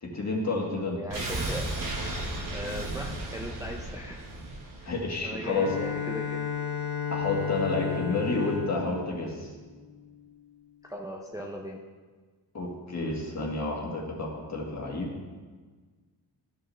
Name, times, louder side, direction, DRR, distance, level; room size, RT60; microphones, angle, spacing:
voice 1, 0.0-1.0 4.8-5.7 7.1-9.5 12.5-15.1, left 3 dB, 40° left, -2 dB, 1.7 m, -30 dB
voice 2, 0.6-1.7 2.5-4.3 5.2-6.5 10.8-11.8, equal, 10° right, 0 dB, 0.5 m, -38 dB
sound 1, 1.1-6.1 6.4-6.5, right 1 dB, 50° right, 1.3 m, -35 dB
Bowed string instrument, 5.4-10.2, left 8 dB, 75° left, 1.7 m, -33 dB
13.5 x 5.3 x 3.3 m, 1.4 s
wide cardioid pair, 150°, 41 cm